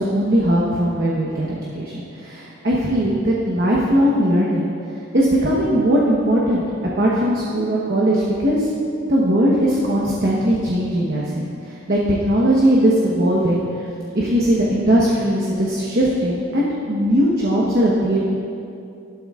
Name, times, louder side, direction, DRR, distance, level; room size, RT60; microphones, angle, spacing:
voice 1, 0.0-4.7 5.1-6.6 7.0-8.7 9.1-13.9 14.1-18.2, equal, 50° right, -5 dB, 1.1 m, -19 dB
12.5 x 12.0 x 2.5 m, 2.5 s
head